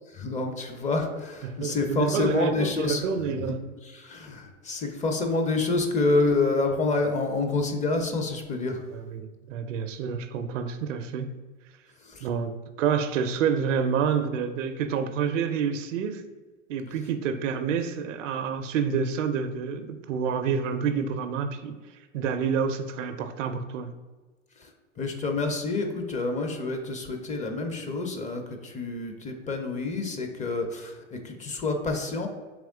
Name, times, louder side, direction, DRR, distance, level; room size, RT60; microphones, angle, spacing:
voice 1, 0.1-3.6 3.8-8.8 12.0-12.3 24.6-24.7 25.0-32.3, left 3 dB, 20° left, 4 dB, 0.5 m, -28 dB
voice 2, 1.4-3.6 8.9-11.3 12.2-16.2 16.7-21.7 22.1-23.9, right 6 dB, 75° right, 10 dB, 0.5 m, -28 dB
3.5 x 3.1 x 3.6 m, 1.3 s
hypercardioid pair, 100°, 38 cm